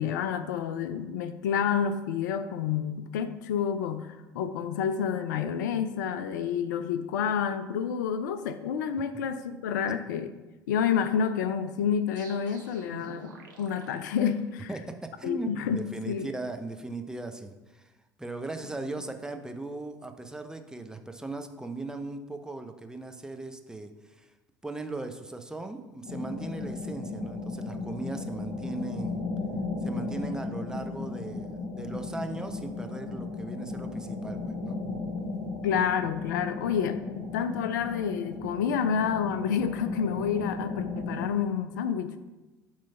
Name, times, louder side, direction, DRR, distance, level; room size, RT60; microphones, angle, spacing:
voice 1, 0.0-10.3 10.7-14.7 15.2-16.3 35.6-42.2, left 7 dB, 70° left, 11 dB, 0.4 m, -29 dB
sound 1, 12.2-14.9, right 3 dB, 80° right, 0.9 m, -48 dB
voice 2, 14.7-17.9 18.2-24.3 24.6-29.2 29.8-34.8, right 2 dB, 5° right, 6 dB, 0.6 m, -38 dB
sound 2, 26.0-41.3, left 3 dB, 45° left, 1.5 m, -35 dB
8.4 x 3.1 x 5.4 m, 1.1 s
figure-of-eight pair, 60°, 10 cm